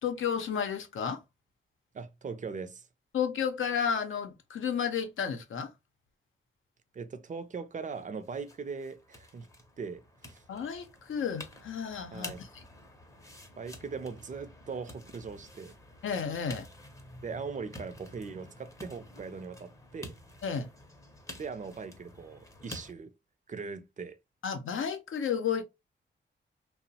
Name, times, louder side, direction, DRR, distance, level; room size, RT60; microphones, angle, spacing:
voice 1, 0.0-1.2 3.1-5.7 10.5-12.5 16.0-16.7 20.4-20.7 24.4-25.6, left 7 dB, 85° left, 0.6 m, -32 dB
voice 2, 1.9-2.9 6.9-9.5 9.8-10.4 12.1-12.5 13.6-15.8 17.2-20.2 21.4-23.1 23.5-24.2, right 5 dB, 40° right, 0.4 m, -40 dB
sound 1, 7.9-22.9, left 1 dB, 15° left, 0.5 m, -49 dB
2.8 x 2.0 x 2.7 m
wide cardioid pair, 125°, 20 cm